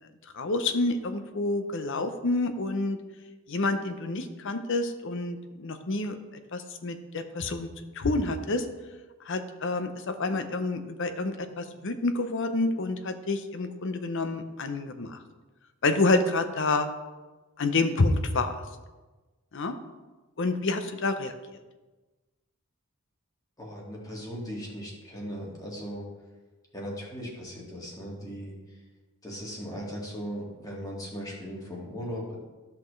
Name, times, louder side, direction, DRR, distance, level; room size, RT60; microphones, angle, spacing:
voice 1, 0.3-3.0 3.5-6.2 6.5-7.7 8.0-8.6 9.3-15.2 15.8-16.9 17.6-18.5 19.5-19.7 20.4-21.3, left 2 dB, 60° left, 9 dB, 0.7 m, -28 dB
voice 2, 23.6-26.0 26.7-28.8 29.2-32.4, equal, 15° left, -3 dB, 2.0 m, -38 dB
13.0 x 5.9 x 3.2 m, 1.2 s
head